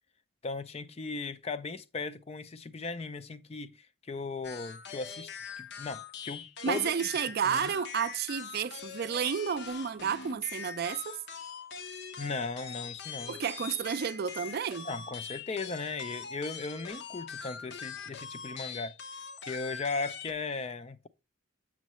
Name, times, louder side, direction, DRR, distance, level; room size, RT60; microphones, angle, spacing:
voice 1, 0.4-5.3 5.6-6.9 7.5-7.7 12.2-13.4 14.8-19.0 19.4-21.1, left 4 dB, 30° left, 0.4 m, -37 dB
sound 1, 4.4-20.3, left 6 dB, 55° left, 0.7 m, -43 dB
voice 2, 6.6-11.2 13.3-14.9, right 7 dB, 50° right, 0.4 m, -31 dB
7.4 x 6.4 x 3.0 m
head